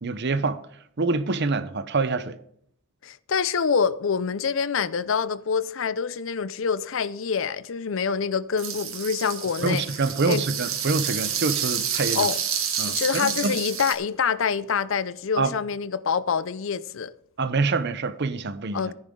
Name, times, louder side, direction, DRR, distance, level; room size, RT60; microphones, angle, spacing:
voice 1, 0.0-0.6 1.0-2.4 9.6-12.3 12.8-13.5 15.4-15.5 17.4-18.8, right 3 dB, 55° right, 0.8 m, -26 dB
voice 2, 3.0-9.8 10.3-10.4 12.1-12.4 12.9-17.1 18.7-18.9, left 6 dB, 65° left, 0.5 m, -26 dB
sound 1, 8.6-13.9, right 8 dB, 75° right, 2.2 m, -29 dB
14.5 x 9.8 x 3.8 m
head